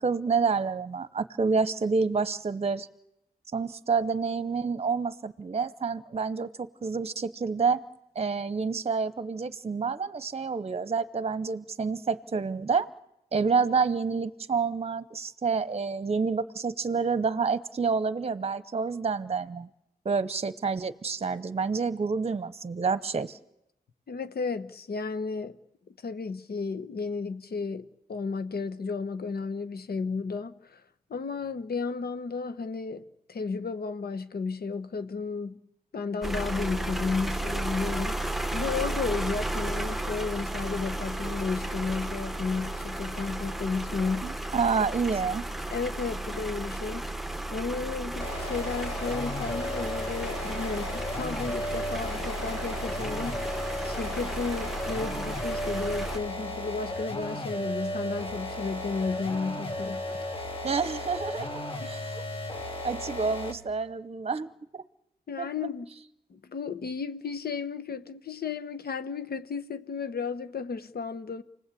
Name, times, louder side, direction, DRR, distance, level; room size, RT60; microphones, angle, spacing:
voice 1, 0.0-2.9 3.5-7.8 8.1-12.9 13.3-19.7 20.0-23.4 44.2-45.4 60.6-61.6 61.8-62.2 62.8-64.8 65.4-65.5, right 5 dB, 40° right, 0.9 m, -28 dB
voice 2, 24.1-25.6 26.0-30.8 31.1-35.6 35.9-38.2 38.5-44.4 45.7-47.1 47.5-53.5 53.8-60.2 61.8-61.9 65.3-65.9 66.3-71.4, left 4 dB, 75° left, 1.1 m, -33 dB
sound 1, 36.2-56.2, right 1 dB, ahead, 1.1 m, -34 dB
sound 2, 48.2-63.7, left 1 dB, 35° left, 2.2 m, -35 dB
28.5 x 20.0 x 8.5 m
wide cardioid pair, 125°, 16 cm